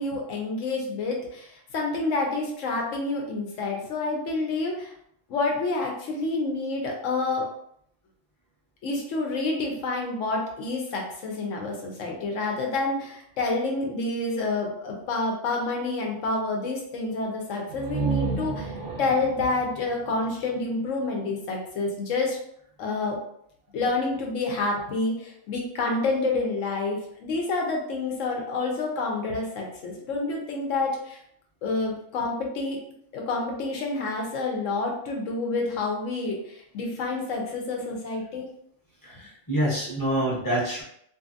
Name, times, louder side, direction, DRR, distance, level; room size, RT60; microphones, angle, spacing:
voice 1, 0.0-4.9 5.3-7.4 8.8-18.7 19.0-22.4 22.8-23.2 23.7-31.2 31.6-32.8 33.1-38.5, left 3 dB, 80° left, 0 dB, 1.1 m, -28 dB
sound 1, 17.7-21.4, right 4 dB, 60° right, 0.7 m, -32 dB
voice 2, 39.0-40.8, right 1 dB, 20° left, -7 dB, 0.8 m, -26 dB
2.7 x 2.5 x 2.5 m, 0.71 s
omnidirectional pair, 1.3 m